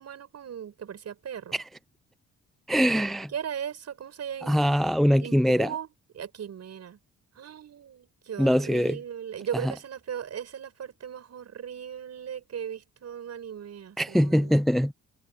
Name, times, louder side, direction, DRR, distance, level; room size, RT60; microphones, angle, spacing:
voice 1, 0.0-1.6 3.3-4.6 5.2-5.9 6.1-7.0 7.4-14.6, right 8 dB, 55° right, 7.0 m, -37 dB
voice 2, 2.7-3.3 4.4-5.7 8.4-9.0 9.6-9.7 14.0-14.9, equal, ahead, 0.5 m, -23 dB
cardioid pair, 90°, 30 cm